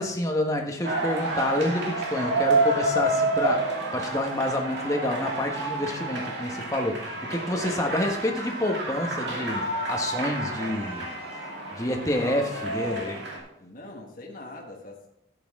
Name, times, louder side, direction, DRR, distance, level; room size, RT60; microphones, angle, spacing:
voice 1, 0.0-11.1 11.7-13.2, left 1 dB, 15° left, 2 dB, 1.2 m, -28 dB
sound 1, 0.8-13.4, right 2 dB, 60° right, 2.4 m, -29 dB
voice 2, 12.4-12.8 13.6-15.1, left 2 dB, 45° left, -1 dB, 1.5 m, -43 dB
12.5 x 8.6 x 3.6 m, 0.79 s
head